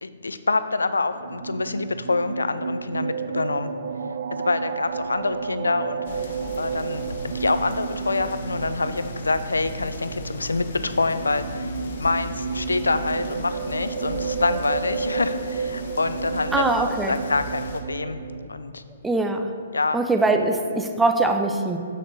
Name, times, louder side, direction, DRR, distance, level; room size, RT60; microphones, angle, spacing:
voice 1, 0.0-3.7 4.3-6.0 6.6-11.7 12.0-16.6 17.1-18.2 18.5-18.8 19.7-20.0, left 3 dB, 85° left, 11 dB, 0.4 m, -26 dB
sound 1, 1.1-18.5, right 6 dB, 60° right, 0.4 m, -32 dB
sound 2, 6.0-17.8, left 2 dB, 60° left, 1.0 m, -38 dB
voice 2, 16.5-17.2 19.0-19.5 19.9-21.8, right 2 dB, 5° right, 5 dB, 0.6 m, -22 dB
7.7 x 6.4 x 4.1 m, 2.4 s
hypercardioid pair, 130°, 0 cm